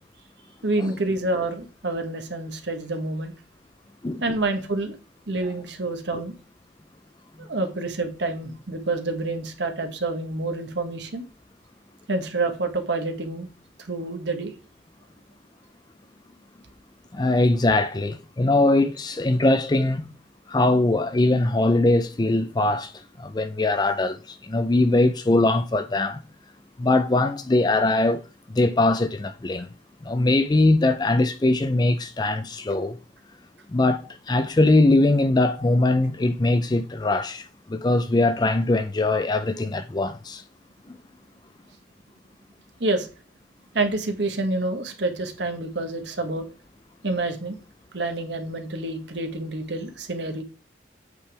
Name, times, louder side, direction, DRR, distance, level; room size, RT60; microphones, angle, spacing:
voice 1, 0.6-3.3 4.2-4.9 5.3-6.3 7.4-11.2 12.1-13.5 13.9-14.5 42.8-43.1 43.7-46.5 47.0-47.6 47.9-50.4, right 2 dB, 75° right, 1.2 m, -28 dB
voice 2, 4.0-4.3 6.1-6.2 17.1-20.1 20.5-22.9 23.2-26.2 26.8-28.2 28.5-29.7 30.0-33.0 33.7-40.4 40.9-41.0, left 2 dB, 25° left, 0.4 m, -21 dB
8.2 x 5.1 x 3.4 m
head